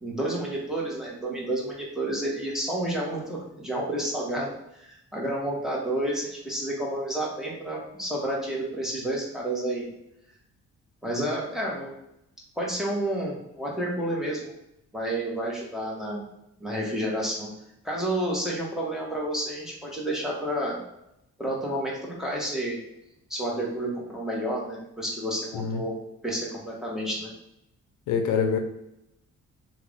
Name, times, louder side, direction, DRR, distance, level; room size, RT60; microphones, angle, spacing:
voice 1, 0.0-4.5 4.8-9.9 11.0-11.9 12.6-14.5 14.9-16.2 16.6-17.5 17.8-20.8 21.4-22.8 23.3-25.9 26.2-27.3, right 1 dB, ahead, -4 dB, 1.3 m, -30 dB
voice 2, 28.1-28.6, left 6 dB, 85° left, 5 dB, 0.6 m, -25 dB
3.4 x 2.4 x 3.5 m, 0.81 s
cardioid pair, 90°, 30 cm